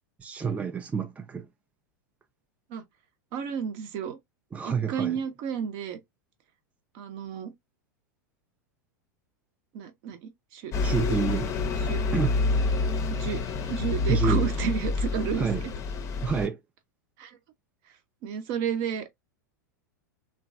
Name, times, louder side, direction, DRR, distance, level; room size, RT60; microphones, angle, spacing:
voice 1, 0.2-1.5 4.5-5.1 10.8-11.5 12.1-12.4 14.1-14.5 15.4-15.6 16.2-16.6, right 6 dB, 15° right, 0.4 m, -28 dB
voice 2, 3.3-4.2 4.6-6.0 6.9-7.5 9.7-10.7 11.8-12.0 13.1-13.4 13.7-15.7 17.2-17.4 18.2-19.1, right 8 dB, 50° right, 0.8 m, -32 dB
Bus, 10.7-16.5, left 3 dB, 30° left, 0.6 m, -27 dB
3.0 x 2.3 x 2.5 m
figure-of-eight pair, 90°, 10 cm